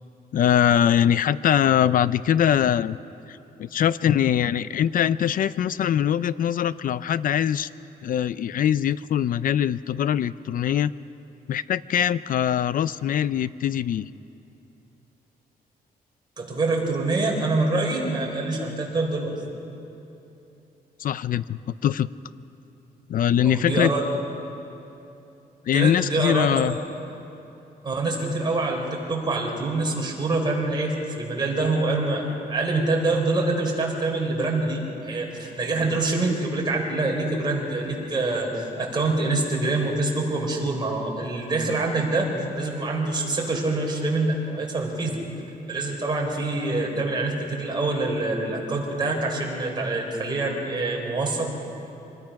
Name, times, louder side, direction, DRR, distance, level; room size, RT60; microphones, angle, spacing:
voice 1, 0.3-3.0 3.3-7.7 8.0-10.9 11.5-14.1 21.0-22.1 23.1-23.9 25.7-26.8, left 10 dB, 65° left, 16 dB, 0.5 m, -22 dB
voice 2, 16.4-19.3 23.4-24.0 25.7-26.6 27.8-42.3 42.6-45.1 45.7-51.5, right 2 dB, 30° right, -1 dB, 4.5 m, -25 dB
25.5 x 20.0 x 5.9 m, 3.0 s
cardioid pair, 130°, 16 cm